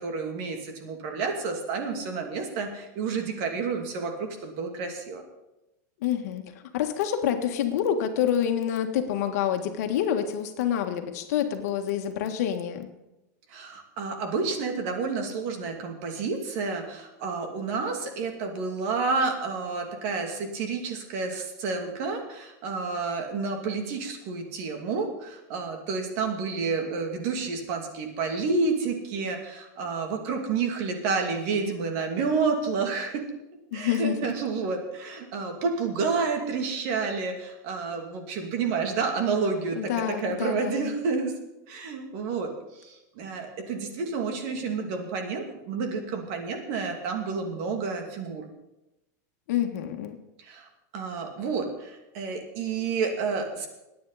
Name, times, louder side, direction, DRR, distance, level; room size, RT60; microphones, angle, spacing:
voice 1, 0.0-5.2 13.5-33.2 33.7-41.3 41.7-48.4 50.4-50.7 50.9-53.7, right 4 dB, 50° right, 3 dB, 2.6 m, -30 dB
voice 2, 6.0-6.4 6.7-12.9 33.7-34.2 39.8-40.9 49.5-50.2, left 9 dB, 65° left, 5 dB, 1.6 m, -27 dB
22.5 x 9.4 x 4.2 m, 0.94 s
supercardioid pair, 160°, 9 cm